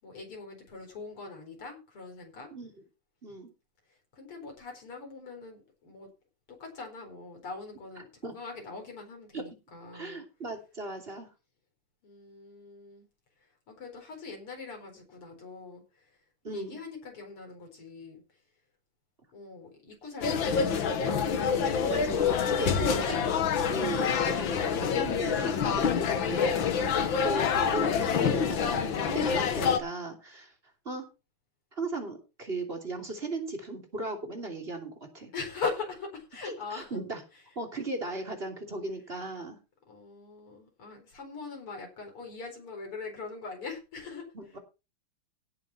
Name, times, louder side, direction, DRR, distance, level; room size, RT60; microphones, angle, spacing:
voice 1, 0.0-2.5 3.3-3.4 4.1-6.1 6.5-8.1 8.3-10.2 12.0-13.0 13.7-16.0 16.5-18.2 19.3-20.7 35.3-37.0 39.9-44.3, left 4 dB, 80° left, 2 dB, 5.2 m, -41 dB
voice 2, 9.9-11.3 16.4-16.8 21.5-23.2 23.7-30.5 30.8-31.1 31.7-35.3 36.4-37.2 37.5-39.6 44.3-44.6, right 2 dB, 25° right, 3 dB, 3.1 m, -37 dB
sound 1, 20.2-29.8, left 6 dB, 65° left, 2.0 m, -27 dB
17.0 x 7.3 x 4.3 m, 0.29 s
omnidirectional pair, 2.4 m